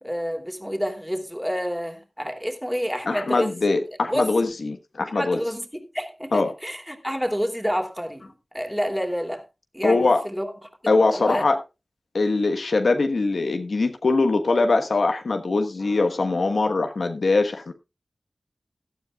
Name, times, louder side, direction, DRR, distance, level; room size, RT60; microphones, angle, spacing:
voice 1, 0.0-3.5 4.0-4.5 5.1-9.4 9.7-10.5 11.1-11.5, equal, ahead, 2.9 m, -29 dB
voice 2, 3.1-5.4 6.3-6.5 9.8-10.2 10.9-11.6 12.1-17.7, left 3 dB, 85° left, 1.3 m, -22 dB
17.0 x 12.0 x 2.4 m
cardioid pair, 45°, 0 cm